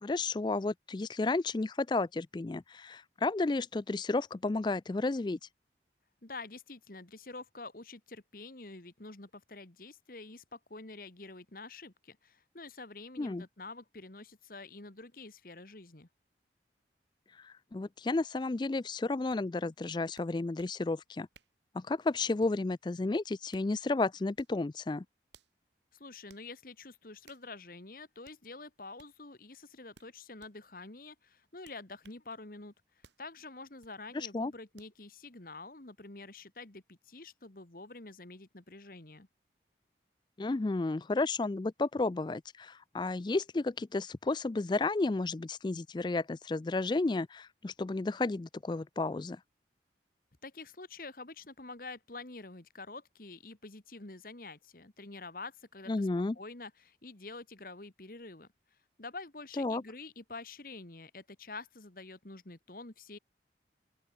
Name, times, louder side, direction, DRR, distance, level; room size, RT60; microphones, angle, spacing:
voice 1, 0.0-5.4 13.2-13.4 17.4-21.3 21.7-25.0 34.1-34.5 40.4-49.4 55.9-56.4 59.6-59.8, left 3 dB, 25° left, 0.4 m, -32 dB
voice 2, 6.2-16.1 25.9-32.7 33.2-39.3 50.4-56.1 56.4-58.5 59.0-63.2, left 3 dB, 50° left, 1.8 m, -47 dB
sound 1, 19.3-19.4 20.2-20.8 21.3-21.6 22.4-22.7 23.3-23.7 24.3-24.6 25.3-25.5 26.3-26.5 27.2-27.5 28.2-28.4 29.0-29.1 29.9-30.5 31.6-32.2 33.0-33.2 33.8-34.0 34.8-35.0, right 5 dB, 80° right, 3.6 m, -62 dB
open air
head